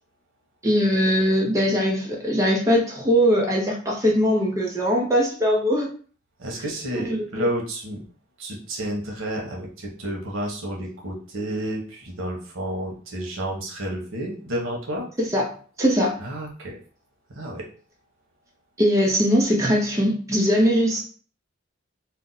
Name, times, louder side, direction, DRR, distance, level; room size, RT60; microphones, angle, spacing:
voice 1, 0.6-5.9 7.1-7.2 15.3-15.5 15.8-16.1 18.8-21.0, equal, 15° right, -2 dB, 0.6 m, -20 dB
voice 2, 6.4-8.0 8.4-15.1 16.2-16.8 17.3-17.7, right 1 dB, 85° right, 0 dB, 1.0 m, -30 dB
2.6 x 2.1 x 3.9 m, 0.41 s
head